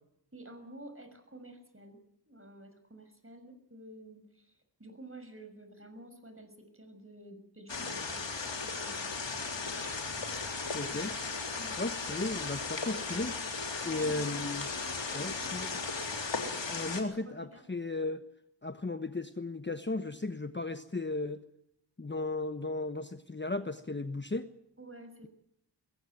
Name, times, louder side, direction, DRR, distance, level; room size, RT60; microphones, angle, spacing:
voice 1, 0.3-2.0 2.3-9.8 10.9-11.2 11.6-11.8 13.8-14.4 14.7-15.8 16.9-17.6 24.8-25.3, right 1 dB, 30° right, 8 dB, 6.3 m, -51 dB
sound 1, 7.7-17.0, left 4 dB, 75° left, 3.6 m, -36 dB
voice 2, 10.7-11.1 11.8-13.3 13.8-14.7 15.1-15.7 16.7-18.2 18.6-21.4 22.0-24.5, left 2 dB, 25° left, 9 dB, 1.1 m, -35 dB
22.0 x 16.0 x 9.2 m, 0.76 s
cardioid pair, 40°, 44 cm